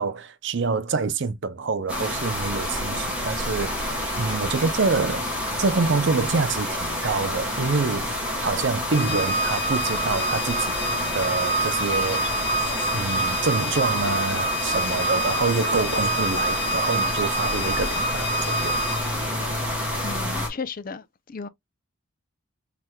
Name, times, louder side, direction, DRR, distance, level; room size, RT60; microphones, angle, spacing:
voice 1, 0.0-5.3 5.6-10.8 11.1-12.2 12.9-18.7, right 4 dB, 60° right, 0.6 m, -26 dB
sound 1, 1.9-20.5, left 1 dB, 5° right, 1.7 m, -28 dB
Organ, 8.9-19.3, right 1 dB, 25° left, 1.7 m, -27 dB
voice 2, 20.0-21.0 21.3-21.5, left 4 dB, 40° left, 0.5 m, -34 dB
5.9 x 3.3 x 2.2 m
head